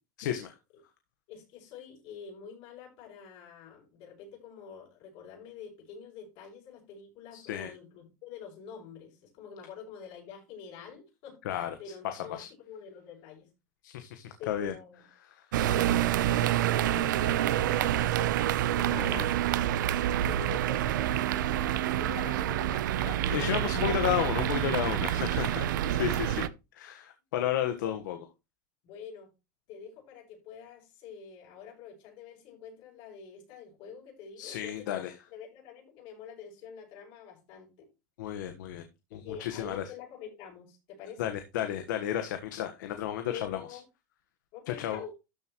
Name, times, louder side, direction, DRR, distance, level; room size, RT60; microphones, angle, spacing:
voice 1, 0.2-0.5 7.4-7.7 11.4-11.7 12.0-12.5 13.8-14.7 15.3-15.8 18.9-19.3 23.3-26.5 26.7-28.3 34.4-35.1 38.2-38.8 39.1-39.8 41.2-43.8 44.7-45.0, left 11 dB, 80° left, 7 dB, 1.4 m, -33 dB
voice 2, 1.3-11.4 11.8-13.5 14.4-15.0 15.8-19.5 19.9-23.4 23.6-23.7 25.3-25.4 27.7-28.0 28.8-29.3 29.7-37.9 39.1-41.3 43.3-43.8 44.5-45.1, left 7 dB, 55° left, -1 dB, 6.5 m, -47 dB
sound 1, 15.5-26.5, right 12 dB, 85° right, 0.7 m, -27 dB
13.0 x 7.5 x 3.1 m, 0.26 s
supercardioid pair, 130°, 10 cm